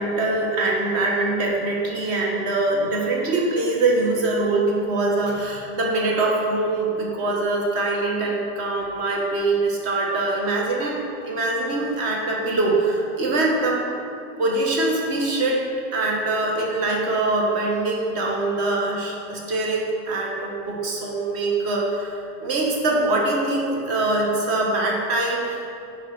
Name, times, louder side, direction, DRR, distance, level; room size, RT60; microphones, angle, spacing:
voice 1, 0.0-13.8 14.4-15.7 15.9-25.6, right 2 dB, 35° right, -2 dB, 1.3 m, -23 dB
9.5 x 4.0 x 4.9 m, 2.6 s
supercardioid pair, 170°, 43 cm